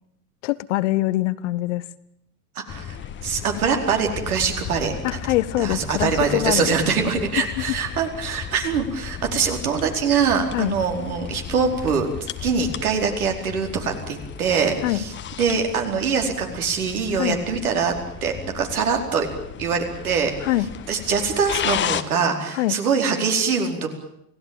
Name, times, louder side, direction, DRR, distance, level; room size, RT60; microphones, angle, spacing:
voice 1, 0.4-1.8 5.0-6.8 10.5-10.7 14.8-15.0 17.1-17.4 20.4-20.7 22.5-22.8, left 16 dB, 50° left, 15 dB, 1.2 m, -23 dB
voice 2, 2.5-3.0 3.2-5.2 5.6-15.1 15.4-17.9 18.2-19.3 19.6-20.5 20.9-23.9, right 5 dB, 65° right, 3 dB, 4.7 m, -23 dB
sound 1, 2.7-22.0, left 9 dB, 25° left, 1.4 m, -34 dB
28.5 x 18.0 x 8.9 m, 0.78 s
figure-of-eight pair, 85°, 46 cm